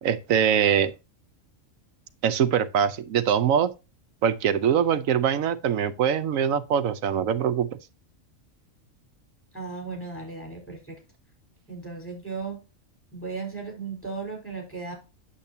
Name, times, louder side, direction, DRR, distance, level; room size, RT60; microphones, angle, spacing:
voice 1, 0.0-0.9 2.2-3.7 4.2-7.7, right 8 dB, 75° right, 1.2 m, -23 dB
voice 2, 9.5-11.0 11.7-12.6 13.1-14.9, right 4 dB, 10° left, 4.4 m, -36 dB
8.7 x 7.4 x 2.7 m
omnidirectional pair, 1.4 m